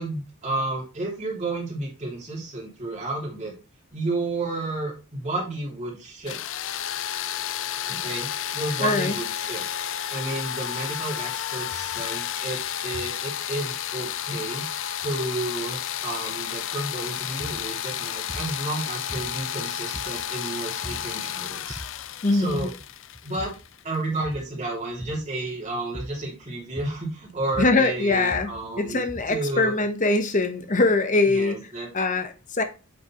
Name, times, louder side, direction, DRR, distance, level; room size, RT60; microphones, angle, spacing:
voice 1, 0.0-3.5 3.9-6.4 7.8-9.6 10.1-14.7 15.0-21.8 22.3-22.7 23.2-23.5 23.8-29.7 31.3-31.9, right 2 dB, 30° right, 2.9 m, -31 dB
sound 1, 6.3-24.0, left 10 dB, 60° left, 0.4 m, -32 dB
voice 2, 8.8-9.2 22.2-22.7 27.6-31.6 31.9-32.6, left 3 dB, 35° left, 0.9 m, -23 dB
sound 2, 17.4-17.7 18.3-18.6 19.1-19.6 19.9-20.4 20.8-21.1 21.5-22.1 22.5-22.9 23.1-23.7 24.1-24.5 25.0-25.3 25.9-26.3 26.8-27.1 27.4-29.5, equal, ahead, 0.5 m, -40 dB
8.5 x 5.3 x 3.0 m
head